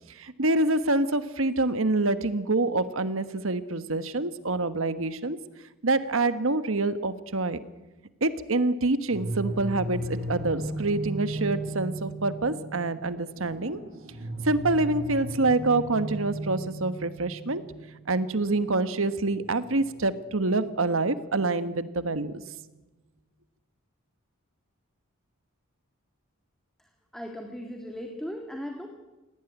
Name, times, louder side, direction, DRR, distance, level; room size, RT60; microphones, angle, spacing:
voice 1, 0.2-5.4 5.8-7.6 8.2-13.8 14.4-17.6 18.1-22.4, right 2 dB, 65° right, 13 dB, 1.3 m, -26 dB
sound 1, 9.1-21.9, right 1 dB, 45° right, 6.7 m, -37 dB
voice 2, 27.1-28.9, equal, ahead, 2 dB, 1.9 m, -37 dB
19.0 x 18.0 x 9.3 m, 1.1 s
head